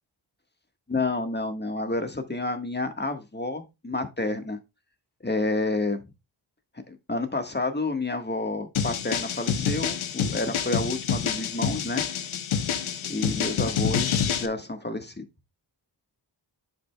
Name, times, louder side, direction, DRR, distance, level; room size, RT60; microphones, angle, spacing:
voice 1, 0.9-4.6 5.2-6.0 6.9-12.0 13.0-15.2, left 2 dB, 20° left, 1.6 m, -29 dB
sound 1, 8.7-14.5, left 7 dB, 85° left, 0.9 m, -27 dB
11.0 x 5.2 x 2.3 m
cardioid pair, 50°, 47 cm